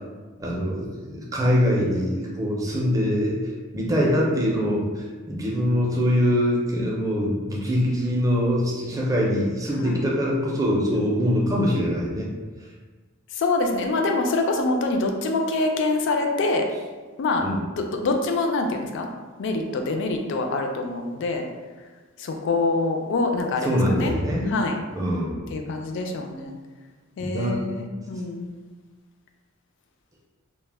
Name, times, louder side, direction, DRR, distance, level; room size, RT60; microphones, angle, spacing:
voice 1, 0.4-3.4 3.7-12.3 17.4-17.6 23.6-24.5 24.9-25.4 27.2-27.6, equal, 15° right, -3 dB, 0.4 m, -23 dB
voice 2, 13.3-16.7 17.2-17.4 17.8-19.1 19.4-21.5 22.2-24.1 24.5-24.8 25.5-26.6 27.2-28.5, left 3 dB, 60° left, 4 dB, 0.3 m, -25 dB
2.1 x 2.0 x 3.2 m, 1.4 s
head